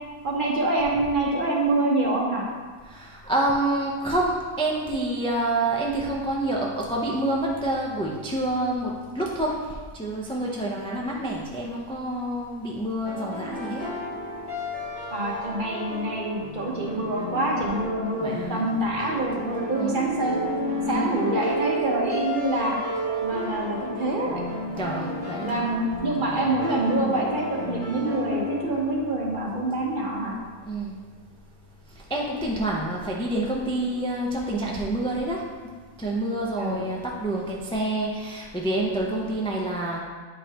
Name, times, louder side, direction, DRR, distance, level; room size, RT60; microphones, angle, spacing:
voice 1, 0.2-2.4 15.1-20.4 20.9-22.8 23.2-24.5 25.4-30.3 36.6-36.9, right 2 dB, 40° right, -2 dB, 1.1 m, -26 dB
voice 2, 2.9-14.0 18.2-18.7 19.8-20.0 20.9-21.1 24.8-25.7 30.7-31.0 31.9-35.5 36.0-40.0, right 1 dB, 5° left, -3 dB, 0.4 m, -28 dB
sound 1, 13.1-29.9, left 1 dB, 60° left, 2.5 m, -32 dB
8.5 x 5.2 x 2.9 m, 1.5 s
omnidirectional pair, 1.4 m